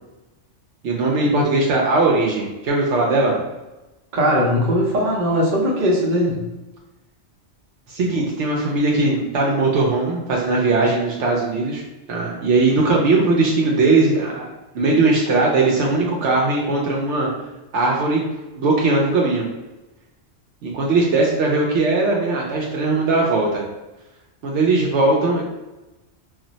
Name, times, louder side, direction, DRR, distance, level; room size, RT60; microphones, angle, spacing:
voice 1, 0.8-3.4 7.9-11.8 12.1-17.3 17.7-18.2 18.6-19.5 20.6-23.6 24.4-25.4, right 3 dB, 75° right, -2 dB, 0.9 m, -19 dB
voice 2, 4.1-6.5, equal, 45° right, -3 dB, 0.8 m, -19 dB
2.4 x 2.1 x 3.9 m, 1.0 s
omnidirectional pair, 1.3 m